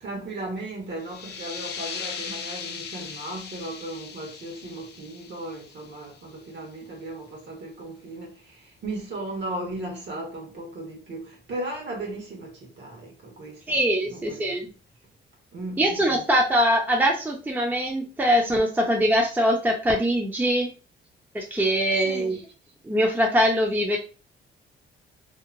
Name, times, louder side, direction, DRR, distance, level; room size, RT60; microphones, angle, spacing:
voice 1, 0.0-14.7 15.5-16.2 22.0-22.4, right 1 dB, 60° right, 1.3 m, -36 dB
sound 1, 1.0-6.4, left 6 dB, 60° left, 0.5 m, -38 dB
voice 2, 13.7-14.7 15.8-20.7 21.3-22.3 22.9-24.0, equal, 10° right, 0.6 m, -22 dB
2.8 x 2.2 x 2.5 m
cardioid pair, 90°, 20 cm